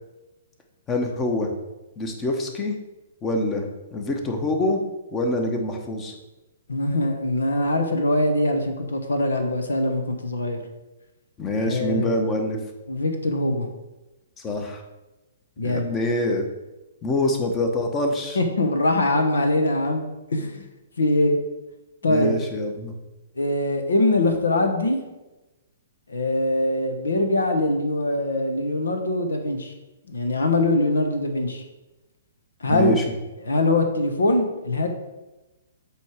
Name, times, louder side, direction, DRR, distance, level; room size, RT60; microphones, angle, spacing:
voice 1, 0.9-1.5 2.0-2.7 3.2-4.8 5.1-6.1 11.4-12.6 14.4-14.8 15.6-16.5 17.0-18.4 22.0-22.9 32.7-33.0, left 1 dB, 20° left, 3 dB, 1.0 m, -25 dB
voice 2, 6.7-10.6 11.6-12.1 12.9-13.7 15.6-15.9 18.3-20.0 20.3-20.6 21.0-21.4 22.0-22.3 23.4-25.0 26.1-29.7 30.1-31.6 32.6-33.0 33.4-34.9, left 2 dB, 75° left, 5 dB, 1.0 m, -22 dB
8.2 x 3.2 x 5.0 m, 1.1 s
figure-of-eight pair, 120°, 0 cm